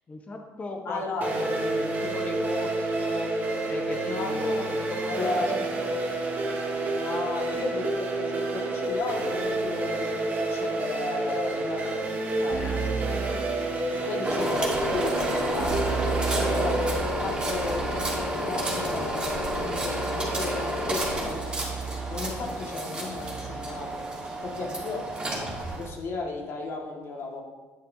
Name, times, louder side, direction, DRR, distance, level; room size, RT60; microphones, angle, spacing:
voice 1, 0.1-3.3 3.7-6.1 12.5-12.8 14.0-14.1, left 2 dB, 30° left, 3 dB, 1.0 m, -38 dB
voice 2, 0.8-1.4 4.0-4.7 5.1-5.5 6.9-12.7 13.9-15.9 16.3-21.7 22.1-24.0 24.4-25.1 25.4-27.4, left 3 dB, 55° left, 0 dB, 1.8 m, -34 dB
sound 1, 1.2-16.9, right 2 dB, 35° right, 1.7 m, -29 dB
Keyboard (musical), 12.5-14.2 15.6-24.0, right 6 dB, 55° right, 0.7 m, -35 dB
sound 2, 14.2-25.9, right 1 dB, 20° right, 2.8 m, -30 dB
9.7 x 8.7 x 2.7 m, 1.3 s
cardioid pair, 110°, 5 cm